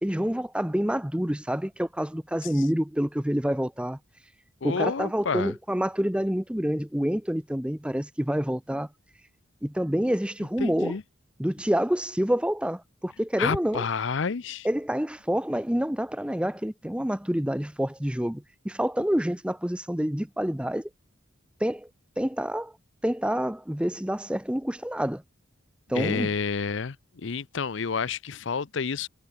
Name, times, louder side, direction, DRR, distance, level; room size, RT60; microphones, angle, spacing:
voice 1, 0.0-4.0 4.6-8.9 9.6-11.0 11.4-13.9 14.6-20.9 21.6-21.9 22.2-22.7 23.0-25.2 25.9-26.3, equal, 5° right, 0.8 m, -27 dB
voice 2, 4.6-5.5 10.6-11.0 13.4-14.7 25.9-29.1, left 5 dB, 60° left, 0.6 m, -29 dB
head